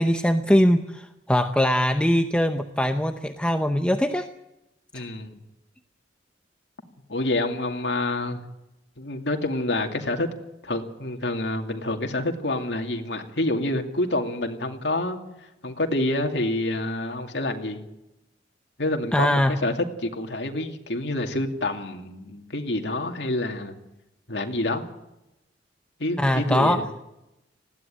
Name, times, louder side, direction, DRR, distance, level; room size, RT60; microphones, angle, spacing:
voice 1, 0.0-4.3 4.9-5.0 19.1-19.6 26.2-26.8, left 1 dB, 5° left, 6 dB, 0.8 m, -22 dB
voice 2, 4.9-5.4 7.1-8.4 9.0-10.3 10.6-15.2 15.6-17.8 18.8-23.7 24.3-24.9 26.0-26.8, left 2 dB, 70° left, 4 dB, 2.5 m, -27 dB
20.5 x 16.0 x 9.2 m, 0.91 s
head